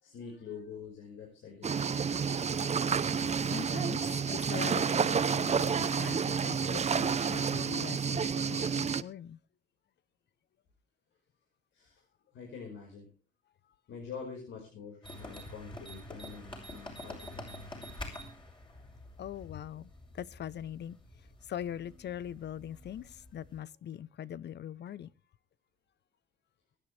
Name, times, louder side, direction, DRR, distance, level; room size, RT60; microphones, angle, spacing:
voice 1, 0.0-2.2 11.7-12.0 12.3-13.1 13.9-17.4, left 6 dB, 75° left, 5.2 m, -46 dB
sound 1, 1.6-9.0, right 6 dB, 35° right, 0.8 m, -30 dB
voice 2, 3.2-9.4 19.2-25.1, left 10 dB, 60° left, 0.9 m, -42 dB
sound 2, 15.0-23.6, left 1 dB, 25° left, 6.4 m, -47 dB
23.0 x 10.0 x 3.4 m
cardioid pair, 90°, 20 cm